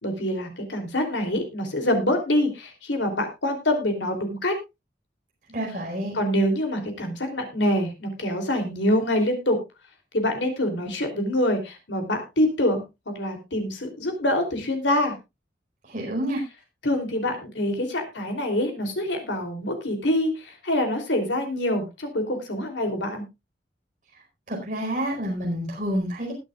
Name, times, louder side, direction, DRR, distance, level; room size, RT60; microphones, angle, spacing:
voice 1, 0.0-4.5 6.1-9.6 10.1-15.1 16.8-23.2, left 1 dB, 90° left, 4 dB, 3.3 m, -25 dB
voice 2, 5.5-6.2 15.8-16.4 24.5-26.3, equal, 45° right, -2 dB, 4.8 m, -28 dB
20.0 x 8.9 x 2.5 m, 0.24 s
head